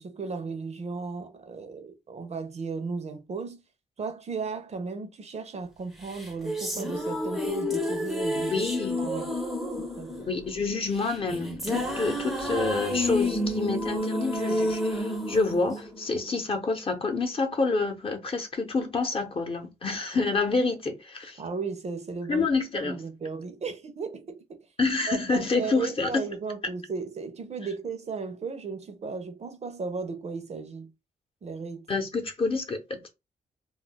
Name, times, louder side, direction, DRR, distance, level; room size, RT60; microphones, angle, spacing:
voice 1, 0.0-3.6 4.0-8.7 9.0-9.3 9.8-10.3 21.4-22.5 22.8-24.7 25.1-30.9 31.4-31.9, right 4 dB, 45° right, 0.6 m, -35 dB
sound 1, 6.1-16.5, left 1 dB, ahead, 0.6 m, -30 dB
voice 2, 8.3-9.0 10.3-21.4 22.3-23.0 24.8-26.2 31.9-33.1, left 3 dB, 35° left, 0.8 m, -28 dB
2.3 x 2.1 x 3.8 m
wide cardioid pair, 110°, 16 cm